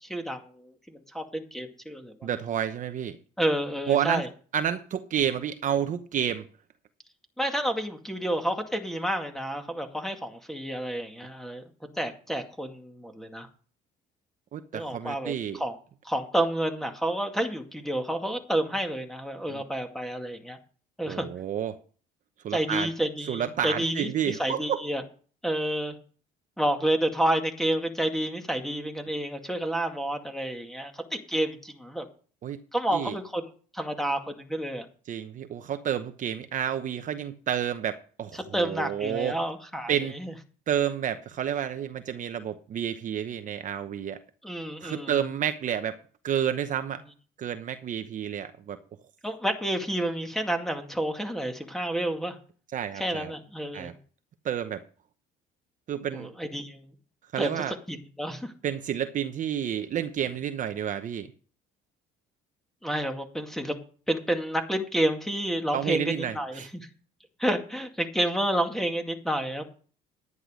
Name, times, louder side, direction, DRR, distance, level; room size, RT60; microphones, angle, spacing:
voice 1, 0.0-2.3 3.4-4.3 7.4-11.6 12.0-13.5 14.7-15.8 16.0-20.6 21.0-21.3 22.5-25.0 25.4-26.0 26.6-32.1 32.7-33.5 33.7-34.9 38.5-40.3 44.4-45.2 49.2-52.4 53.0-54.0 56.1-56.9 57.4-58.5 62.8-63.7 64.1-66.9 67.4-69.6, right 1 dB, ahead, 5 dB, 2.1 m, -30 dB
voice 2, 2.2-3.2 3.9-4.2 4.5-6.4 14.5-15.6 19.5-19.6 21.1-21.8 22.4-22.9 23.3-24.8 32.4-32.6 32.9-33.2 35.1-39.4 39.9-40.1 40.7-44.2 44.8-46.0 46.2-47.0 47.4-48.8 52.7-53.3 53.7-53.9 54.4-54.8 55.9-56.3 57.3-57.7 58.6-61.3 65.7-66.7, right 9 dB, 45° right, 9 dB, 0.9 m, -30 dB
11.0 x 10.5 x 5.0 m, 0.40 s
cardioid pair, 125°, 18 cm